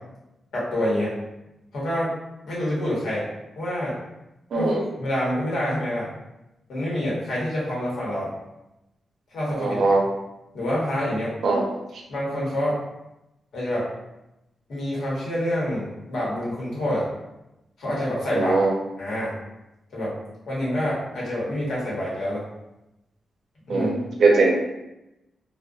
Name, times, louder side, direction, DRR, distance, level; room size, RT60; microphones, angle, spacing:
voice 1, 0.5-1.2 1.7-2.1 2.4-3.2 3.6-3.9 4.6-6.1 6.7-8.3 9.3-9.8 10.5-11.3 12.1-12.8 13.5-13.9 14.7-17.1 17.8-18.6 19.0-19.3 19.9-20.1 20.5-22.4 23.7-23.9, left 1 dB, 80° left, -7 dB, 1.0 m, -27 dB
voice 2, 9.6-10.0 11.4-11.7 18.3-18.7 23.7-24.5, right 3 dB, 65° right, -1 dB, 0.5 m, -20 dB
2.5 x 2.2 x 2.3 m, 0.93 s
wide cardioid pair, 165°, 0 cm